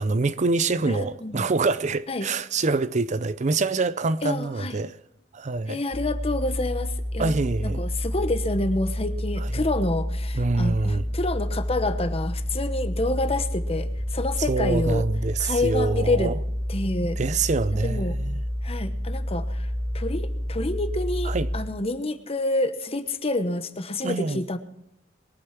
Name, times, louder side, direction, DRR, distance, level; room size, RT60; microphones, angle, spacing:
voice 1, 0.0-5.0 5.3-5.8 7.2-7.8 9.4-9.6 10.3-11.0 14.5-16.4 17.2-18.4 21.2-21.5 24.0-24.4, right 3 dB, 40° right, 0.5 m, -25 dB
voice 2, 0.8-1.5 2.1-2.3 4.2-4.8 5.7-7.3 7.6-15.1 15.4-16.3 16.7-17.2 17.8-18.2 18.6-19.7 19.9-24.6, left 2 dB, 30° left, 1.1 m, -28 dB
sound 1, 5.9-21.6, equal, 75° right, 3.6 m, -29 dB
21.5 x 8.0 x 5.9 m
head